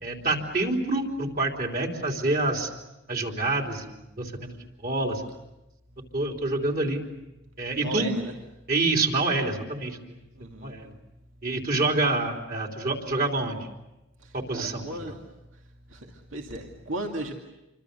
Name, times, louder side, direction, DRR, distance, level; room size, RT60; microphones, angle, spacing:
voice 1, 0.0-2.7 3.1-4.5 4.8-5.2 6.1-7.0 7.6-8.1 8.7-10.0 10.6-10.9 11.4-13.7 14.3-14.8, right 2 dB, 45° right, 2 dB, 3.4 m, -27 dB
voice 2, 7.8-8.3 10.3-10.8 14.2-15.2 15.9-17.3, right 1 dB, 75° right, 1 dB, 2.4 m, -36 dB
28.0 x 25.0 x 6.8 m, 0.97 s
head